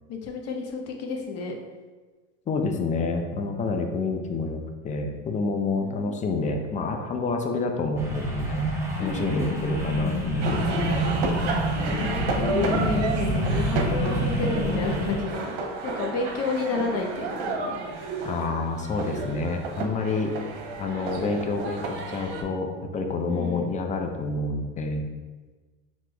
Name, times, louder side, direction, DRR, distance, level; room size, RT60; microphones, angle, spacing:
voice 1, 0.1-1.5 5.8-6.1 9.0-9.6 11.8-15.5 15.8-17.8 23.3-23.7, left 4 dB, 45° left, 2 dB, 0.8 m, -31 dB
voice 2, 2.5-8.7 9.0-10.8 18.2-20.4 20.8-25.0, left 3 dB, 20° left, 4 dB, 0.4 m, -28 dB
sound 1, 8.0-15.2, equal, 10° right, 0.8 m, -27 dB
sound 2, 10.4-22.4, right 3 dB, 80° right, 0.8 m, -32 dB
6.0 x 2.9 x 2.3 m, 1.3 s
supercardioid pair, 115°, 35 cm